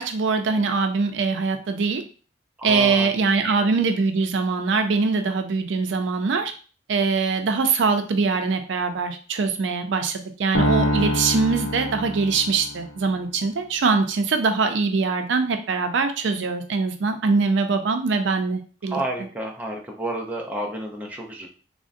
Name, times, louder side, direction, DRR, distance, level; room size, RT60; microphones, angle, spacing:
voice 1, 0.0-2.0 2.6-6.5 6.9-19.0, right 4 dB, 75° right, 6 dB, 0.4 m, -23 dB
voice 2, 2.6-3.1 3.4-3.5 18.9-21.5, right 1 dB, 10° right, -1 dB, 0.5 m, -30 dB
sound 1, 10.5-12.9, left 1 dB, 85° left, 0.6 m, -25 dB
3.6 x 2.1 x 2.5 m, 0.38 s
head